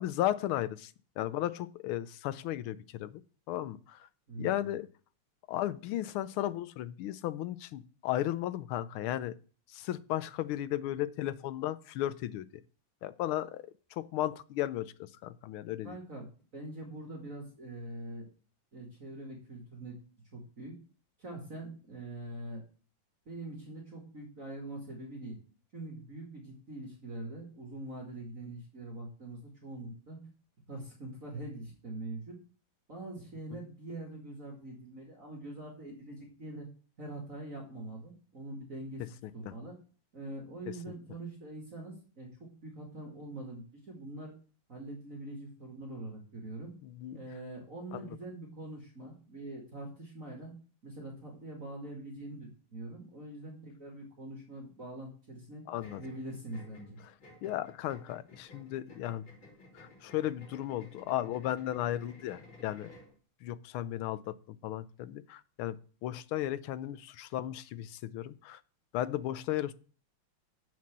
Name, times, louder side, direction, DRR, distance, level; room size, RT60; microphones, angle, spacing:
voice 1, 0.0-3.2 3.5-4.1 4.4-4.9 5.5-9.3 9.7-12.5 13.0-16.0 33.5-33.6 39.5-39.6 46.8-47.2 47.9-48.2 55.7-56.0 57.4-59.2 59.7-62.9 63.4-68.6 68.9-69.7, left 13 dB, 75° left, 15 dB, 1.5 m, -35 dB
voice 2, 4.3-4.7 15.8-18.3 18.7-20.0 20.3-20.8 21.2-22.6 23.3-25.4 25.7-30.2 30.7-32.4 32.9-36.7 37.0-39.8 40.1-44.3 44.7-46.7 47.1-50.5 50.8-55.6 56.0-57.0, right 1 dB, 40° right, 0 dB, 2.4 m, -44 dB
sound 1, 55.8-63.2, left 2 dB, 60° left, 5.3 m, -55 dB
7.3 x 6.1 x 7.3 m, 0.39 s
omnidirectional pair, 2.4 m